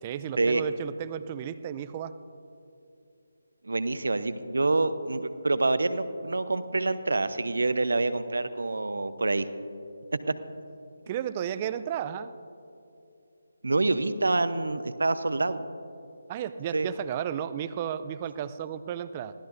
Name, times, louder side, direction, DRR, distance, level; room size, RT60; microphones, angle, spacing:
voice 1, 0.0-2.2 11.1-12.3 16.3-19.3, right 9 dB, 25° right, 13 dB, 0.5 m, -33 dB
voice 2, 3.6-9.4 13.6-15.6 16.7-16.9, right 3 dB, 70° right, 12 dB, 0.8 m, -26 dB
24.5 x 16.0 x 2.7 m, 2.6 s
figure-of-eight pair, 150°, 0 cm